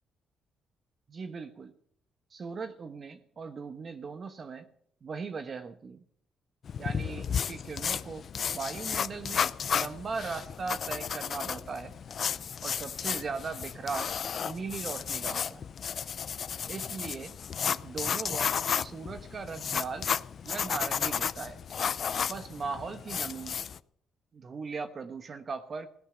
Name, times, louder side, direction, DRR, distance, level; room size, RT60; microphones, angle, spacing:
voice 1, 1.1-1.7 2.3-4.7 5.0-6.0 6.8-11.9 12.6-14.1 14.4-15.7 16.7-17.3 17.8-20.1 20.4-21.6 22.3-23.6 24.3-25.9, right 4 dB, 45° right, 9 dB, 1.1 m, -38 dB
sound 1, 6.7-23.8, left 7 dB, 55° left, 0.6 m, -33 dB
17.0 x 11.0 x 6.8 m, 0.64 s
cardioid pair, 90°, 0 cm